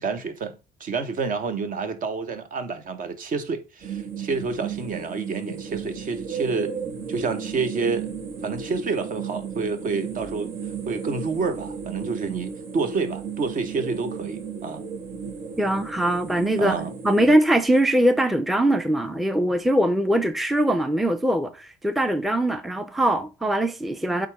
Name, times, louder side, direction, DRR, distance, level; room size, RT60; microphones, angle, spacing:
voice 1, 0.0-6.7 7.1-8.1 8.4-10.5 10.9-14.8 16.6-16.9, right 4 dB, 55° right, 1.1 m, -28 dB
sound 1, 3.8-17.4, right 6 dB, 75° right, 1.8 m, -34 dB
voice 2, 15.6-16.8 17.0-24.3, right 1 dB, ahead, 0.5 m, -22 dB
8.2 x 3.7 x 3.5 m
cardioid pair, 110°, 17 cm